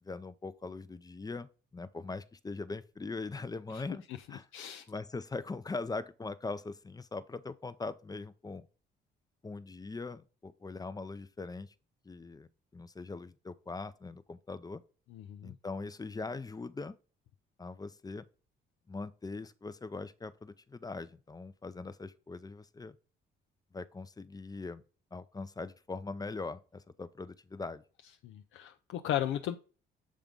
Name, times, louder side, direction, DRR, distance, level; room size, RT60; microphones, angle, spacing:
voice 1, 0.0-4.0 4.3-4.5 4.9-8.7 9.4-11.7 12.1-14.8 15.4-17.0 17.6-18.2 18.9-23.0 23.7-24.8 25.1-27.8, left 3 dB, 20° left, 0.6 m, -41 dB
voice 2, 4.5-4.8 15.1-15.5 28.2-29.6, left 11 dB, 80° left, 0.5 m, -35 dB
7.4 x 3.6 x 5.2 m
cardioid pair, 90°, 20 cm